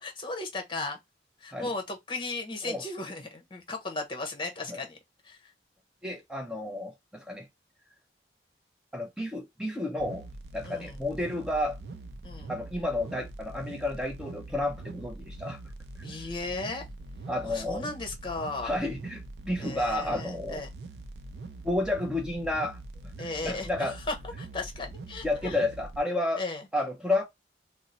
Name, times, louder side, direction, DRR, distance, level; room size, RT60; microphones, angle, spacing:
voice 1, 0.0-1.0 1.4-5.0 5.2-5.5 10.6-11.0 12.2-12.5 16.0-16.8 17.5-18.7 19.6-20.7 23.2-25.6 26.4-26.6, left 3 dB, 25° left, 0.8 m, -36 dB
voice 2, 6.0-7.5 8.9-10.3 10.5-11.8 12.5-15.6 17.3-17.9 18.6-20.6 21.6-22.8 23.4-23.9 25.2-26.4 26.7-27.2, left 1 dB, 5° right, 0.4 m, -31 dB
sound 1, 10.0-26.0, right 2 dB, 65° right, 0.4 m, -43 dB
2.8 x 2.0 x 3.8 m
head